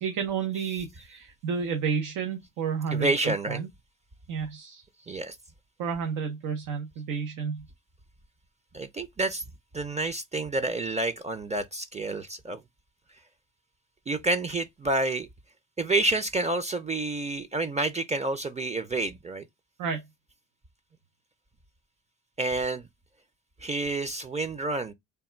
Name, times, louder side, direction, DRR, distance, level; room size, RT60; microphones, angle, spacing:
voice 1, 0.0-3.7 4.3-4.8 5.8-7.6 19.8-20.0, right 6 dB, 85° right, 0.9 m, -31 dB
voice 2, 2.9-3.6 5.1-5.4 8.7-9.4 9.7-12.6 14.1-15.3 15.8-19.4 22.4-22.9 23.6-24.9, right 2 dB, 20° right, 0.5 m, -29 dB
3.4 x 2.3 x 4.4 m
cardioid pair, 100°, 30 cm